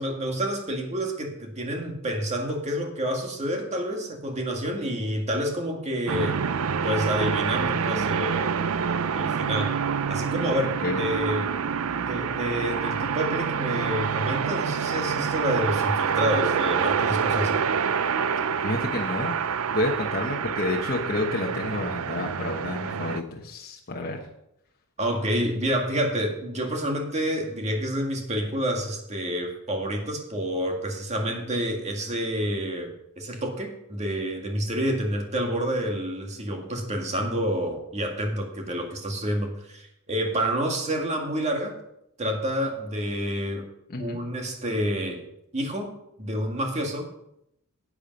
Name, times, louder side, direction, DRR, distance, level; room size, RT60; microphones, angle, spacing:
voice 1, 0.0-6.4 6.8-8.6 9.1-9.7 10.1-11.5 12.0-17.6 25.0-41.8 42.2-43.7 44.0-45.2 45.5-45.9 46.2-47.1, equal, 35° right, 2 dB, 2.0 m, -28 dB
sound 1, 6.1-23.2, right 6 dB, 85° right, 0.5 m, -27 dB
voice 2, 18.6-19.4 19.7-24.2 43.9-44.2, left 2 dB, 45° left, 0 dB, 1.2 m, -29 dB
11.0 x 8.5 x 5.4 m, 0.80 s
head